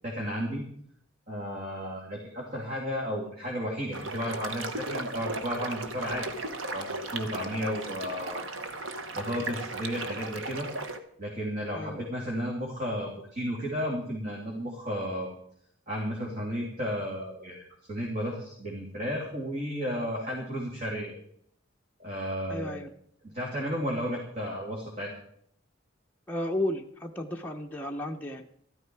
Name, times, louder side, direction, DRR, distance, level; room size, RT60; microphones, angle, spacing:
voice 1, 0.0-0.6 1.3-6.3 6.7-8.5 8.8-10.7 11.2-15.3 15.9-17.6 17.9-21.1 22.0-22.8 23.2-25.1, equal, 45° right, -3 dB, 3.1 m, -33 dB
sound 1, 3.9-11.0, right 2 dB, 85° right, 1.3 m, -36 dB
voice 2, 22.5-22.9 26.3-28.4, left 1 dB, 10° left, 0 dB, 0.8 m, -33 dB
13.0 x 13.0 x 4.8 m, 0.66 s
head